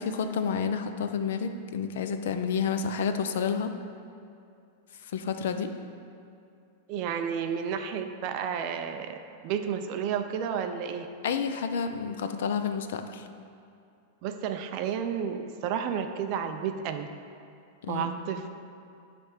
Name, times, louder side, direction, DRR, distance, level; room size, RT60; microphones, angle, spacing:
voice 1, 0.0-3.7 5.0-5.7 11.2-13.3 17.8-18.1, left 6 dB, 65° left, 8 dB, 0.5 m, -30 dB
voice 2, 6.9-11.1 14.2-17.1 17.9-18.7, right 7 dB, 35° right, 7 dB, 0.4 m, -32 dB
10.0 x 3.4 x 5.8 m, 2.5 s
supercardioid pair, 175°, 0 cm